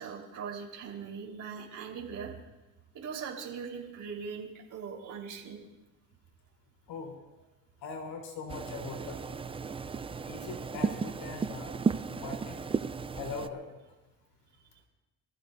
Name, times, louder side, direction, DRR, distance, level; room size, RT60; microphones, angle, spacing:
voice 1, 0.0-2.3 2.9-5.6, right 6 dB, 55° right, -2 dB, 4.2 m, -40 dB
voice 2, 7.8-9.4 10.3-11.8 12.1-12.6 13.1-13.6, left 4 dB, 85° left, 1 dB, 3.8 m, -41 dB
sound 1, 8.5-13.5, right 5 dB, 15° right, 0.4 m, -34 dB
27.0 x 15.0 x 2.7 m, 1.0 s
cardioid pair, 115°, 35 cm